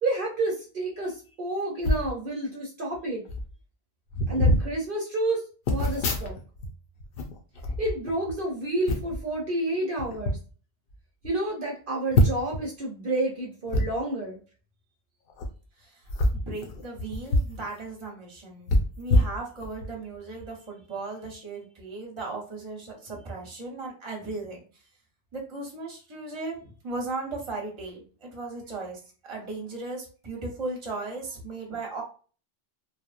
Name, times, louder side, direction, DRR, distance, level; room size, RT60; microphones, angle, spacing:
voice 1, 0.0-3.2 4.3-5.4 5.7-6.4 7.8-10.4 11.2-14.4, right 2 dB, 60° right, -2 dB, 0.8 m, -29 dB
sound 1, 1.8-2.1 2.9-3.0 3.3-3.5 4.1-4.7 5.7-6.7 7.0-8.4 8.9-9.2 10.0-10.4 10.9-11.0 11.2-11.3 12.1-12.6 13.7-13.8 15.3-15.5 16.1-17.6 17.9-18.0 18.7-19.9 20.4-20.5, left 1 dB, 65° left, 0.7 m, -25 dB
voice 2, 16.5-18.7 19.0-24.6 25.3-32.0, right 3 dB, 30° right, -1 dB, 0.8 m, -36 dB
2.9 x 2.0 x 2.4 m, 0.38 s
omnidirectional pair, 1.1 m